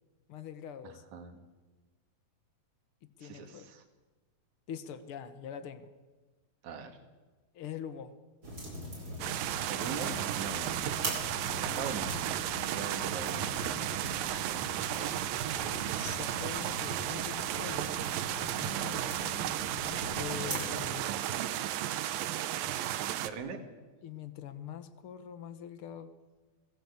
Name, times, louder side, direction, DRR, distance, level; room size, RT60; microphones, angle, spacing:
voice 1, 0.3-1.0 3.0-3.7 4.7-5.9 7.5-8.1 11.6-12.0 15.9-17.9 18.2-19.6 20.2-21.1 24.0-26.1, left 8 dB, 70° left, 11 dB, 1.3 m, -44 dB
voice 2, 0.8-1.4 3.2-3.8 6.6-7.0 9.7-10.7 11.6-12.1 12.7-13.5 23.0-23.6, right 5 dB, 55° right, 3 dB, 3.3 m, -41 dB
sound 1, 8.4-20.9, equal, 25° right, 6.4 m, -42 dB
sound 2, 9.2-23.3, right 12 dB, 80° right, 2.7 m, -34 dB
26.5 x 17.0 x 8.3 m, 1.3 s
omnidirectional pair, 4.1 m